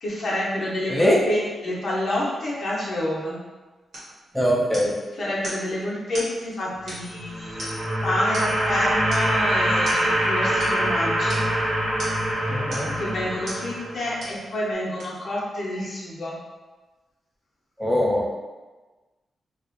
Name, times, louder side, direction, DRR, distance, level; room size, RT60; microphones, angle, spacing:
voice 1, 0.0-3.4 5.1-11.4 13.0-16.4, left 1 dB, 60° left, -5 dB, 0.6 m, -28 dB
voice 2, 0.9-1.2 4.3-5.0 12.5-12.9 17.8-18.3, equal, ahead, -4 dB, 0.6 m, -21 dB
sound 1, 3.9-4.1 4.7-5.0 5.4-5.7 6.1-6.3 6.9-7.2 7.6-7.9 8.3-8.7 9.1-9.3 9.8-10.0 10.6-10.8 11.3-11.5 12.0-12.3 12.7-13.0 13.5-13.7 14.2-14.4 15.0-15.1, equal, 80° right, 1.2 m, -36 dB
sound 2, 7.1-14.2, right 1 dB, 50° right, 1.0 m, -24 dB
2.3 x 2.0 x 2.9 m, 1.2 s
cardioid pair, 75°, 0 cm